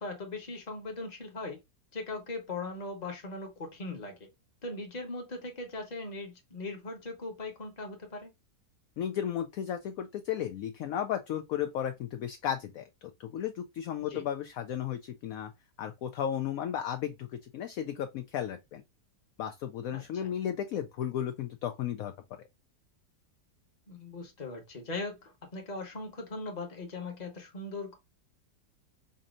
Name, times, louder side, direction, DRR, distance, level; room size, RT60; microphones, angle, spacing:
voice 1, 0.0-1.6 1.9-4.3 4.6-8.3 14.1-14.2 19.9-20.3 23.9-28.0, left 2 dB, 30° left, 1.1 m, -39 dB
voice 2, 9.0-15.5 15.8-18.8 19.4-22.1, left 9 dB, 70° left, 0.9 m, -34 dB
5.2 x 2.7 x 2.4 m
omnidirectional pair, 1.8 m